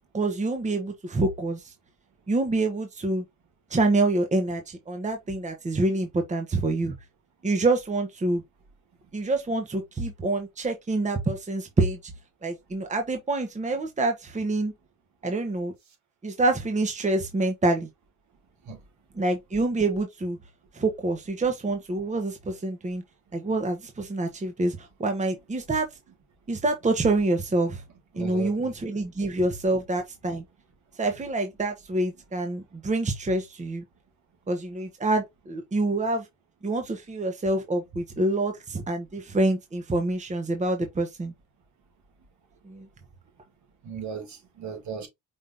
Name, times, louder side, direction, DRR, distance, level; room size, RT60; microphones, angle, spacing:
voice 1, 0.1-1.7 2.3-3.2 3.7-6.9 7.4-8.4 9.1-12.0 12.4-14.7 15.2-15.7 16.2-17.9 19.1-20.4 20.7-23.0 23.3-25.9 26.5-27.8 28.1-30.4 31.0-33.8 34.5-36.3 36.6-41.3 42.6-42.9, right 2 dB, 25° right, 1.1 m, -26 dB
voice 2, 28.1-28.7 43.8-45.1, right 6 dB, 70° right, 2.6 m, -36 dB
5.3 x 3.7 x 2.6 m
cardioid pair, 90°, 30 cm